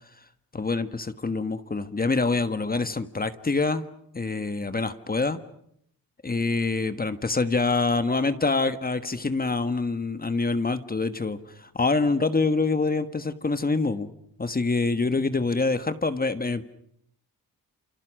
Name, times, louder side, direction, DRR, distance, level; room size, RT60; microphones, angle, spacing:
voice 1, 0.5-3.8 4.1-5.4 6.2-14.1 14.4-16.6, left 3 dB, 25° left, 10 dB, 1.4 m, -25 dB
28.5 x 28.5 x 6.4 m, 0.72 s
cardioid pair, 105°, 37 cm